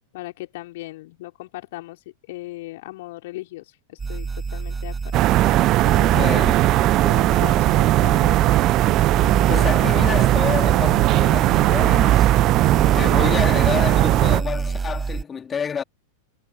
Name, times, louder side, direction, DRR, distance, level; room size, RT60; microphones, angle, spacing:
voice 1, 0.1-5.1 5.5-6.5 7.0-8.8, left 18 dB, 50° left, 4.3 m, -37 dB
sound 1, 4.0-15.2, right 4 dB, 15° right, 6.2 m, -28 dB
sound 2, 5.1-14.4, right 16 dB, 35° right, 0.6 m, -18 dB
voice 2, 6.1-6.6 9.5-12.3 12.9-15.8, left 7 dB, 20° left, 2.9 m, -28 dB
figure-of-eight pair, 90°, 0 cm